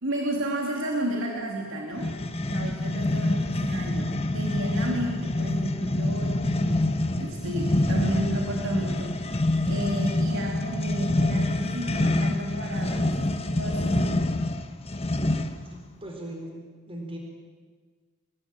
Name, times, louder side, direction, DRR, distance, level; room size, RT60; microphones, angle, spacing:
voice 1, 0.0-14.3, right 1 dB, 65° right, 0 dB, 3.0 m, -32 dB
sound 1, 2.0-15.7, left 1 dB, 30° left, 1.3 m, -26 dB
voice 2, 15.6-16.6 16.9-17.2, right 1 dB, 25° right, 1 dB, 4.4 m, -39 dB
26.5 x 19.5 x 9.0 m, 1.5 s
head